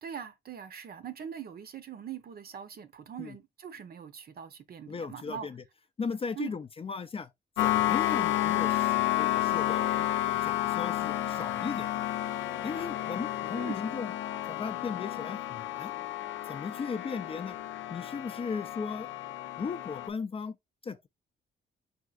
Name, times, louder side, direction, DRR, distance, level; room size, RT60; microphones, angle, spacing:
voice 1, 0.0-5.5 6.4-6.6 13.5-13.8, right 8 dB, 50° right, 0.7 m, -42 dB
voice 2, 4.9-5.6 6.0-7.3 7.6-11.9 12.6-14.1 14.4-15.9 16.5-17.6 17.9-19.1 19.6-20.6 20.8-21.1, left 5 dB, 30° left, 0.4 m, -37 dB
sound 1, 7.6-20.1, left 14 dB, 80° left, 0.5 m, -31 dB
4.3 x 3.7 x 2.4 m
cardioid pair, 90°, 20 cm